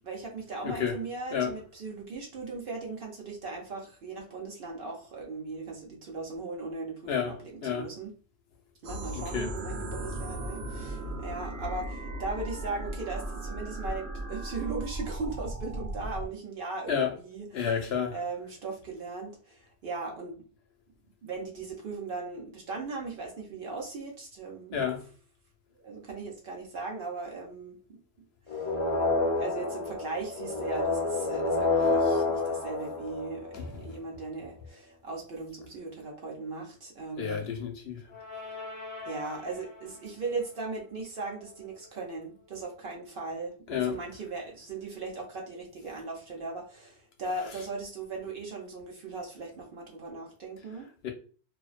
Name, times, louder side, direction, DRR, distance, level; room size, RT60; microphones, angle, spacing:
voice 1, 0.0-8.1 8.8-20.4 21.2-24.8 25.7-28.0 28.5-28.7 29.3-37.4 39.1-50.9, right 3 dB, 60° right, 0.8 m, -38 dB
voice 2, 0.6-1.0 1.3-1.5 7.1-7.9 9.1-9.5 16.9-17.2 17.5-18.1 24.7-25.0 33.5-33.9 37.2-38.0 43.7-44.0 51.0-51.1, left 7 dB, 70° left, 0.8 m, -31 dB
sound 1, 8.8-16.3, right 1 dB, 85° right, 0.9 m, -36 dB
sound 2, 28.5-33.8 38.1-39.8, left 3 dB, 40° left, 0.5 m, -29 dB
2.4 x 2.1 x 2.4 m
omnidirectional pair, 1.1 m